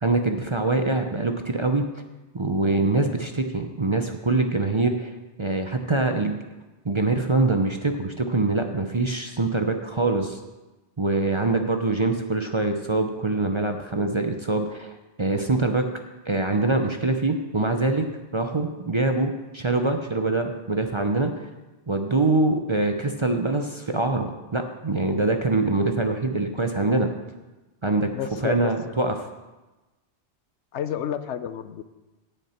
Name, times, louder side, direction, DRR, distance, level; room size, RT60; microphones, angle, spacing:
voice 1, 0.0-1.9 2.3-5.1 5.4-6.4 6.8-10.4 11.0-14.9 15.2-15.9 16.3-18.1 18.3-21.5 21.9-27.1 27.8-28.1 28.4-29.1, right 2 dB, 30° right, 5 dB, 0.6 m, -24 dB
voice 2, 28.1-28.7 30.7-31.8, left 9 dB, 80° left, 12 dB, 0.9 m, -30 dB
17.0 x 6.7 x 4.4 m, 1.1 s
omnidirectional pair, 1.2 m